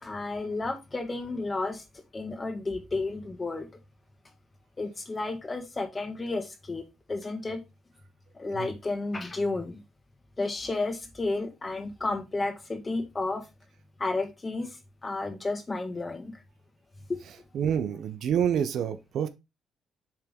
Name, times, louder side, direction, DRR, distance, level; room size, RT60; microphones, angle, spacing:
voice 1, 0.0-1.8 2.1-3.7 4.8-6.8 7.1-7.6 8.3-9.8 10.4-13.4 14.0-14.8 15.0-16.4, left 3 dB, 25° left, 1.5 m, -32 dB
voice 2, 17.5-19.3, right 8 dB, 70° right, 0.7 m, -27 dB
7.2 x 3.7 x 3.6 m
cardioid pair, 90°, 0 cm